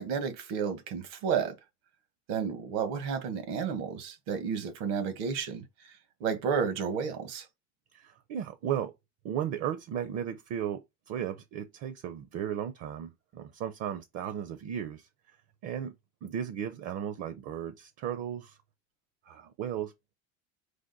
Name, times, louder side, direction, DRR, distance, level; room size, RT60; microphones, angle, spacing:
voice 1, 0.0-1.5 2.3-5.6 6.2-7.5, right 6 dB, 80° right, 1.3 m, -31 dB
voice 2, 7.9-8.9 9.2-15.4 15.6-15.9 16.2-18.6 19.2-20.2, right 9 dB, 50° right, 0.6 m, -35 dB
4.9 x 2.2 x 3.9 m
cardioid pair, 130°, 33 cm